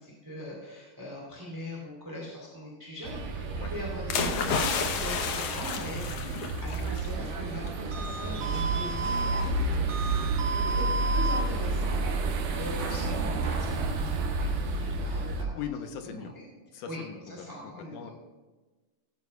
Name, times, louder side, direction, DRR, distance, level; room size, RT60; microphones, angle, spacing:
voice 1, 0.0-10.3 10.6-15.7 16.0-16.5 16.8-18.1, left 1 dB, 5° right, -4 dB, 2.9 m, -42 dB
sound 1, 3.0-15.4, right 3 dB, 85° right, 2.7 m, -31 dB
sound 2, 4.1-7.1 7.5-7.7, left 5 dB, 65° left, 1.7 m, -31 dB
sound 3, 7.0-13.7, right 2 dB, 50° right, 1.5 m, -35 dB
voice 2, 8.2-8.5 15.5-16.3 16.7-18.1, left 8 dB, 80° left, 6 dB, 2.4 m, -40 dB
17.5 x 14.0 x 2.4 m, 1.2 s
omnidirectional pair, 3.7 m